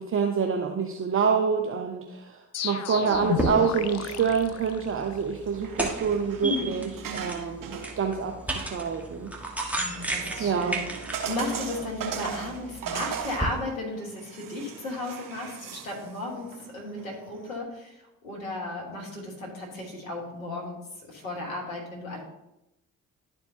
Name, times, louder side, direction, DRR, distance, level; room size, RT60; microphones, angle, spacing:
voice 1, 0.0-9.3 10.4-10.8, right 6 dB, 30° right, 3 dB, 0.8 m, -27 dB
sound 1, 2.5-5.3, left 8 dB, 40° left, 0.6 m, -32 dB
sound 2, 3.1-13.5, right 1 dB, 5° right, 1.4 m, -35 dB
sound 3, 5.3-17.6, right 7 dB, 55° right, 1.3 m, -39 dB
voice 2, 6.4-6.8 9.7-10.9 11.2-20.8 21.1-22.2, left 2 dB, 85° left, -1 dB, 1.5 m, -34 dB
11.5 x 4.5 x 2.8 m, 0.91 s
figure-of-eight pair, 45°, 40 cm